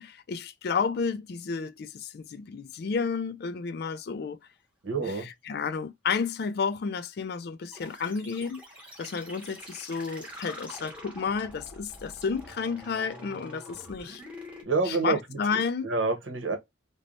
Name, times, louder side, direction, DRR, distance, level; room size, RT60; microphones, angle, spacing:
voice 1, 0.0-4.4 5.0-8.6 9.0-14.2 14.8-15.9, left 5 dB, 60° left, 0.4 m, -31 dB
voice 2, 4.8-5.3 14.7-15.4 15.8-16.6, right 3 dB, 90° right, 1.0 m, -27 dB
sound 1, 7.7-14.6, equal, 5° right, 0.9 m, -46 dB
3.3 x 2.1 x 2.4 m
head